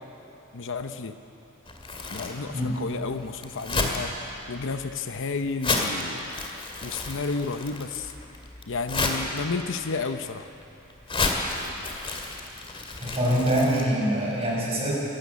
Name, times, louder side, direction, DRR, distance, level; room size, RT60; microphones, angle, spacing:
voice 1, 0.5-1.1 2.1-4.1 4.5-6.3 6.8-8.1 8.7-10.5, left 4 dB, 60° left, 8 dB, 0.8 m, -31 dB
Crumpling crinkling, 1.6-13.8, left 3 dB, 25° left, 2.2 m, -32 dB
voice 2, 13.0-15.0, right 1 dB, 30° right, -5 dB, 6.5 m, -24 dB
27.5 x 13.0 x 8.5 m, 2.9 s
head